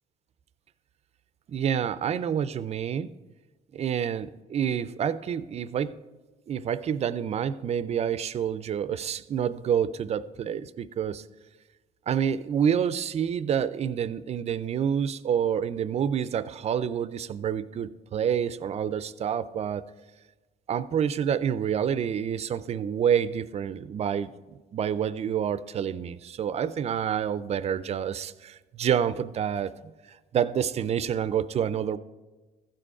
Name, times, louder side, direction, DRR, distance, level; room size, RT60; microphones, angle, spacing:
voice 1, 1.5-3.1 3.7-6.0 6.5-11.2 12.1-19.9 20.7-24.3 24.7-29.7 30.3-32.0, right 8 dB, 40° right, 0.4 m, -28 dB
14.5 x 5.1 x 4.8 m
cardioid pair, 110°, 17 cm